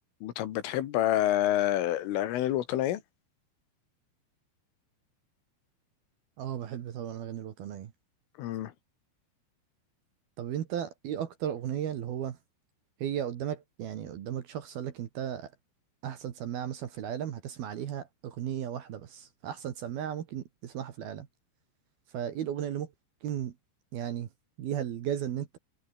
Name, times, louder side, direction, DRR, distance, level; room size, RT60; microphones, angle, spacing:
voice 1, 0.2-3.0 8.4-8.7, left 13 dB, 75° left, 4.2 m, -28 dB
voice 2, 6.4-7.9 10.4-12.4 13.0-15.5 16.0-21.3 22.1-22.9 23.2-23.5 23.9-24.3 24.6-25.6, right 10 dB, 60° right, 3.0 m, -35 dB
omnidirectional pair, 5.9 m